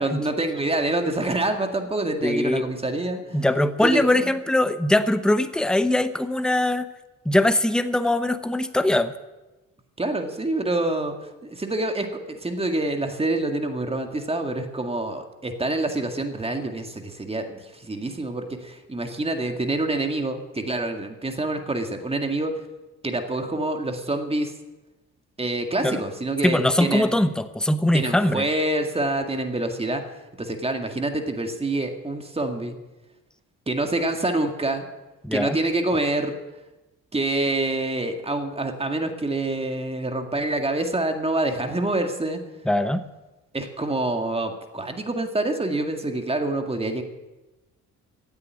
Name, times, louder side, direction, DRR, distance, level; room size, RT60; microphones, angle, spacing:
voice 1, 0.0-3.5 3.8-4.0 10.0-22.5 23.0-24.5 25.4-27.1 27.9-30.1 30.4-32.8 33.7-34.8 35.3-36.4 37.1-42.4 43.5-47.0, right 2 dB, 20° right, 5 dB, 1.9 m, -26 dB
voice 2, 2.2-2.6 3.3-6.9 7.2-9.1 25.8-26.0 26.4-28.4 35.2-35.6 42.7-43.0, left 1 dB, 5° left, 11 dB, 0.9 m, -21 dB
16.0 x 8.3 x 9.5 m, 1.1 s
cardioid pair, 90°, 30 cm